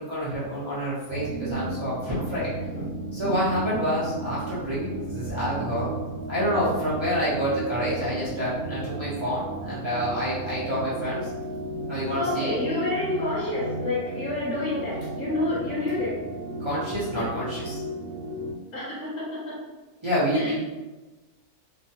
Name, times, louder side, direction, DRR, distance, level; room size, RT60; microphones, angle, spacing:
voice 1, 0.0-2.5 3.1-5.9 6.3-11.3 11.9-12.6 16.6-17.8 20.0-20.5, equal, 25° right, -11 dB, 0.6 m, -28 dB
sound 1, 1.1-18.5, right 2 dB, 85° right, 1.1 m, -34 dB
voice 2, 12.1-16.1 17.2-17.3 18.7-19.6 20.3-20.5, left 2 dB, 60° left, -8 dB, 1.2 m, -29 dB
3.0 x 2.2 x 2.7 m, 1.1 s
omnidirectional pair, 1.6 m